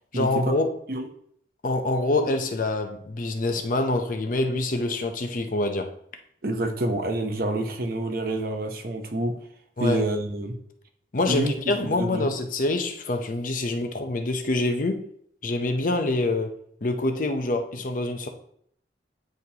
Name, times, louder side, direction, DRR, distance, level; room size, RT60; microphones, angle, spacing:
voice 1, 0.1-0.7 1.6-5.9 9.8-10.0 11.1-15.0 15.4-16.5 16.8-18.3, left 2 dB, 50° left, 0.7 m, -25 dB
voice 2, 6.4-9.4 9.8-10.5 11.3-11.5 11.8-12.3, right 1 dB, 55° right, 0.8 m, -27 dB
9.1 x 4.2 x 2.8 m
head